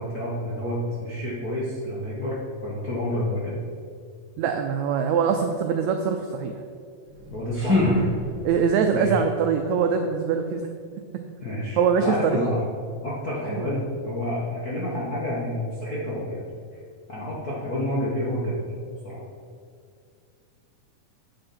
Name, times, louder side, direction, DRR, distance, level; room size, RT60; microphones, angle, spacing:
voice 1, 0.0-3.6 7.3-8.0 8.9-9.2 11.4-12.6 13.0-16.4 17.1-18.5 19.0-19.2, left 1 dB, 55° left, -7 dB, 1.0 m, -29 dB
voice 2, 4.4-6.6 8.4-10.6 11.8-12.5 13.6-13.7, right 6 dB, 90° right, 5 dB, 1.6 m, -23 dB
sound 1, 7.0-8.7, left 1 dB, 5° right, 1.4 m, -25 dB
8.4 x 7.8 x 4.4 m, 2.2 s
omnidirectional pair, 3.8 m